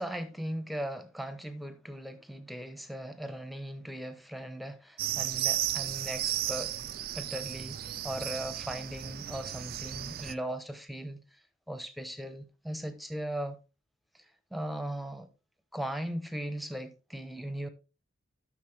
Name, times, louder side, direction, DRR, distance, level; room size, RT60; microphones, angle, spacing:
voice 1, 0.0-6.7 7.1-13.6 14.1-15.3 15.7-17.7, right 1 dB, ahead, 0.8 m, -38 dB
sound 1, 5.0-10.3, right 13 dB, 45° right, 0.4 m, -34 dB
11.5 x 6.3 x 3.2 m
head